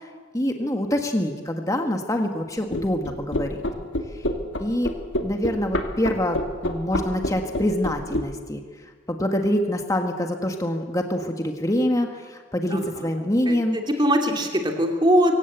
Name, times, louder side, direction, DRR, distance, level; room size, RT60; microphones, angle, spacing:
voice 1, 0.3-3.5 4.6-4.9 5.2-8.6 9.1-13.8, left 1 dB, 20° left, 4 dB, 1.5 m, -25 dB
sound 1, 2.7-8.3, left 1 dB, 80° left, 2.3 m, -26 dB
voice 2, 13.5-15.3, equal, 25° right, 3 dB, 2.7 m, -21 dB
24.0 x 17.0 x 8.1 m, 1.5 s
head